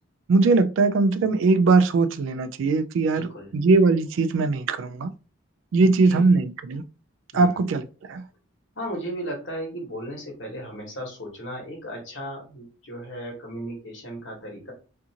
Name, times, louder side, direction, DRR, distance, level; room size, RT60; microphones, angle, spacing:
voice 1, 0.3-3.3 3.5-5.1 5.7-6.8 7.3-7.8 8.1-8.2, right 3 dB, 65° right, 0.3 m, -20 dB
voice 2, 3.1-3.5 5.8-6.2 7.3-7.6 8.8-14.7, right 1 dB, 65° left, 1.2 m, -35 dB
2.6 x 2.4 x 2.8 m
head